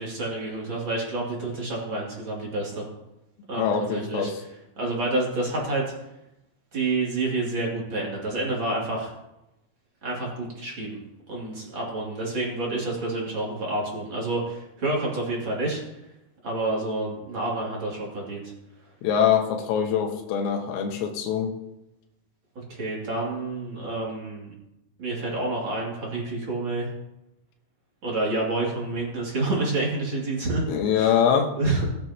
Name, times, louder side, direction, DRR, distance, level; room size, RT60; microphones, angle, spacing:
voice 1, 0.0-2.9 3.5-4.3 4.8-5.9 6.7-9.1 10.0-11.0 11.3-15.8 16.4-18.5 22.5-24.5 25.0-26.9 28.0-30.6 31.0-31.2 31.5-31.9, right 2 dB, 35° right, -3 dB, 2.3 m, -28 dB
voice 2, 3.6-4.4 19.0-21.6 30.7-31.5, left 8 dB, 80° left, 3 dB, 3.8 m, -23 dB
20.5 x 7.8 x 2.9 m, 0.89 s
omnidirectional pair, 5.9 m